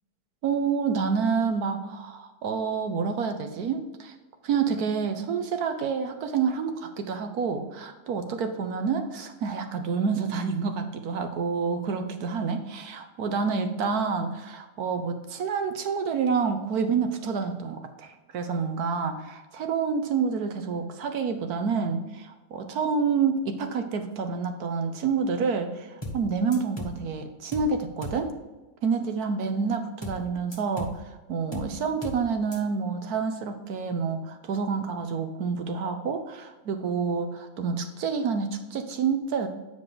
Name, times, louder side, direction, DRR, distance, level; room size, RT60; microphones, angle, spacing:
voice 1, 0.4-4.1 4.4-28.3 28.8-39.5, right 5 dB, 65° right, 7 dB, 1.3 m, -28 dB
sound 1, 26.0-26.3 26.5-27.0 27.5-27.8 28.0-28.3 30.0-30.3 30.5-31.0 31.5-31.8 32.0-32.3 32.5-32.6, left 1 dB, 20° left, 1.0 m, -37 dB
9.1 x 5.1 x 3.9 m, 1.1 s
omnidirectional pair, 1.8 m